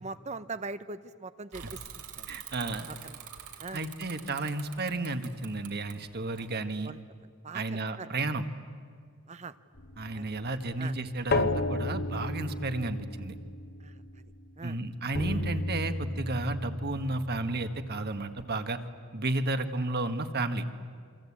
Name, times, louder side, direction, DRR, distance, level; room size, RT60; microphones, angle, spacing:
voice 1, 0.0-1.8 2.2-2.3 2.9-3.2 3.6-3.9 6.4-7.0 7.4-7.6 8.0-8.1 9.3-9.5 10.1-10.2 10.8-10.9 13.8-13.9 14.6-14.8, right 3 dB, 30° right, 13 dB, 0.7 m, -41 dB
Bicycle / Mechanisms, 1.5-7.0, right 8 dB, 85° right, 3.0 m, -46 dB
voice 2, 2.3-2.9 3.7-6.9 7.5-8.4 10.0-13.3 14.6-18.8 19.1-20.6, right 2 dB, 45° right, 8 dB, 1.5 m, -32 dB
sound 1, 9.7-14.6 15.1-18.4, left 2 dB, 45° left, 1.2 m, -34 dB
27.5 x 25.0 x 8.6 m, 2.1 s
head